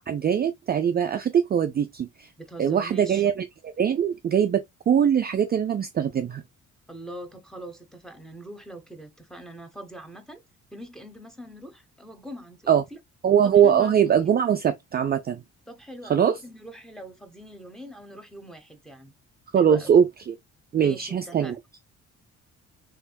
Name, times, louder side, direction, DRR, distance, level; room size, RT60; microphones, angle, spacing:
voice 1, 0.1-2.3 2.6-3.4 3.8-6.4 12.7-12.8 13.2-15.4 16.1-16.4 19.5-20.3 20.7-21.5, right 8 dB, 30° right, 0.4 m, -22 dB
voice 2, 2.4-3.2 6.9-10.4 10.7-13.0 13.4-14.0 15.7-19.1 19.5-19.9 20.8-21.6, right 1 dB, ahead, 1.0 m, -42 dB
3.4 x 3.4 x 2.2 m
cardioid pair, 90°, 30 cm